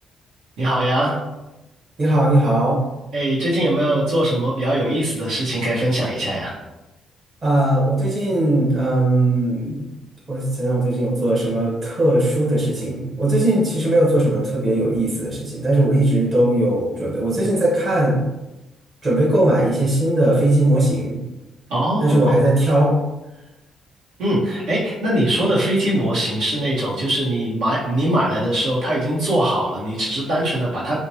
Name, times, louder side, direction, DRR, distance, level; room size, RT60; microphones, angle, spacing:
voice 1, 0.6-1.1 3.1-6.5 21.7-22.4 24.2-31.0, right 1 dB, 85° right, -7 dB, 1.1 m, -21 dB
voice 2, 2.0-2.8 7.4-9.9 10.3-18.2 19.0-21.2 22.0-23.0, right 1 dB, 45° right, -4 dB, 1.3 m, -19 dB
4.4 x 2.2 x 3.0 m, 1.0 s
cardioid pair, 90°, 0 cm